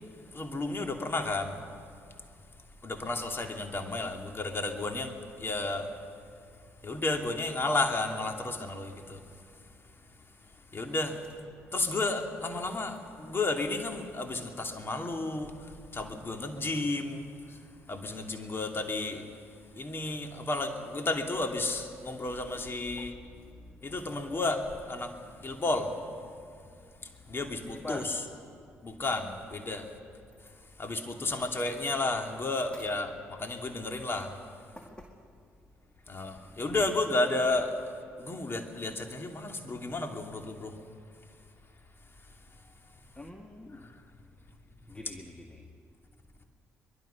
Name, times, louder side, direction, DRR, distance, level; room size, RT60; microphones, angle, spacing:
voice 1, 0.3-1.6 2.8-5.1 5.4-5.9 6.8-9.2 10.7-11.2 11.7-15.5 15.9-17.3 17.9-19.2 19.8-23.2 23.8-25.1 25.4-25.9 27.3-28.2 28.8-29.8 30.8-34.4 36.1-37.8 38.2-40.7, left 2 dB, 30° left, 4 dB, 2.7 m, -32 dB
voice 2, 22.3-24.2 27.6-28.1 34.8-35.1 36.7-36.9 43.2-43.9 44.9-45.6, left 1 dB, 15° left, 3 dB, 2.1 m, -45 dB
23.0 x 22.5 x 5.9 m, 2.3 s
figure-of-eight pair, 45°, 7 cm